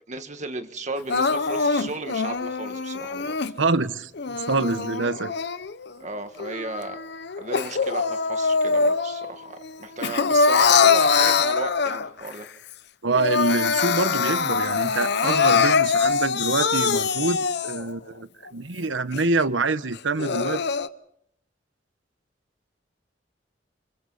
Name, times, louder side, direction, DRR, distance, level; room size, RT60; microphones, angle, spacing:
voice 1, 0.1-3.4 6.0-7.0 7.4-12.5, right 2 dB, 40° right, 7 dB, 1.7 m, -34 dB
Crying sobbing, 1.1-3.5 4.2-5.9 6.4-9.3 9.6-12.3 12.7-12.8 13.1-17.9 18.5-18.6 19.1-19.2 20.0-20.9, left 5 dB, 60° left, 0.8 m, -23 dB
voice 2, 3.6-5.3 13.0-17.4 17.6-20.6, right 3 dB, 80° right, 13 dB, 1.1 m, -26 dB
29.5 x 27.0 x 4.2 m, 0.71 s
head